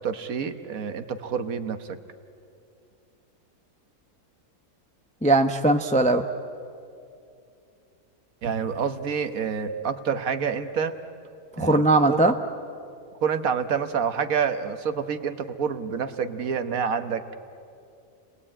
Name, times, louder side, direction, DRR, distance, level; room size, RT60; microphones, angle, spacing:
voice 1, 0.0-1.9 8.4-10.9 11.6-12.2 13.2-17.2, right 6 dB, 65° right, 9 dB, 1.5 m, -28 dB
voice 2, 5.2-6.3 11.6-12.3, right 2 dB, 10° left, 6 dB, 0.5 m, -20 dB
29.5 x 19.5 x 8.8 m, 2.5 s
omnidirectional pair, 1.6 m